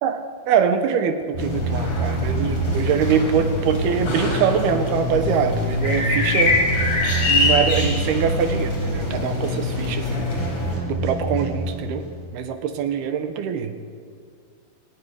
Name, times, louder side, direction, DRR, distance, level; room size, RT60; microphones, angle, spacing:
voice 1, 0.0-6.6 7.3-10.2 10.9-12.0 12.3-13.7, right 7 dB, 65° right, 8 dB, 2.7 m, -23 dB
sound 1, 1.3-12.3, equal, 35° right, 6.5 m, -26 dB
sound 2, 1.4-10.8, left 2 dB, 30° left, 5.3 m, -26 dB
27.0 x 15.5 x 10.0 m, 2.2 s
omnidirectional pair, 5.7 m